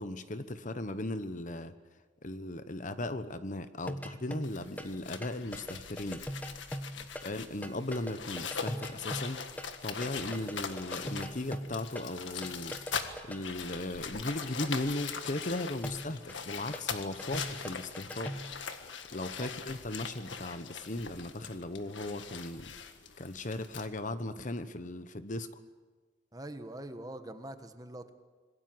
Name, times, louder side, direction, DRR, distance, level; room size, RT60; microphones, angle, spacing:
voice 1, 0.0-1.7 2.2-6.2 7.2-9.4 9.8-12.8 13.2-18.4 19.1-22.7 23.2-25.5, left 2 dB, 45° left, 11 dB, 1.1 m, -37 dB
sound 1, 3.8-5.0 5.2-9.8 10.0-13.4 15.8-18.6, equal, 10° left, 1.2 m, -41 dB
sound 2, 4.4-23.9, left 6 dB, 80° left, 1.7 m, -41 dB
voice 2, 26.3-28.1, right 1 dB, 20° right, 8 dB, 1.4 m, -44 dB
26.0 x 21.0 x 7.9 m, 1.4 s
head